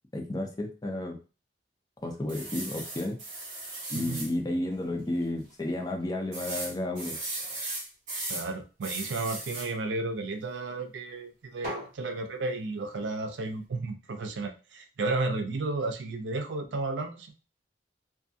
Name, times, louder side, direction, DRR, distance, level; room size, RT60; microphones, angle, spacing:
voice 1, 0.1-1.2 2.0-3.2 3.9-7.2, left 1 dB, 20° left, 2 dB, 0.5 m, -32 dB
sound 1, 2.3-4.3 4.8-4.9 5.2-5.3 6.3-8.5 8.8-9.7 11.6-11.9, right 2 dB, 45° right, 1.1 m, -37 dB
voice 2, 8.3-17.3, right 3 dB, 80° right, 6 dB, 0.4 m, -33 dB
2.6 x 2.4 x 2.6 m, 0.33 s
head